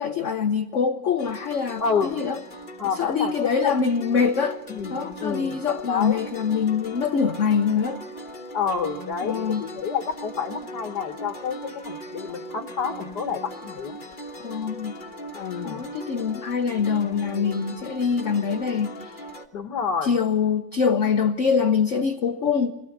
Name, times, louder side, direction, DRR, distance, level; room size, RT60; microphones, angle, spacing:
voice 1, 0.0-2.4 2.9-4.6 4.9-8.0 9.2-9.6 14.4-14.9 15.6-19.2 20.0-22.7, left 6 dB, 50° left, 6 dB, 1.0 m, -24 dB
sound 1, 1.2-19.5, right 1 dB, 30° left, 1.4 m, -39 dB
voice 2, 1.8-2.3 2.8-3.9 4.7-5.6 5.9-6.2 8.5-14.0 15.3-15.8 19.5-20.1, left 6 dB, 70° left, 6 dB, 1.8 m, -29 dB
24.0 x 18.0 x 7.2 m, 0.95 s
omnidirectional pair, 1.9 m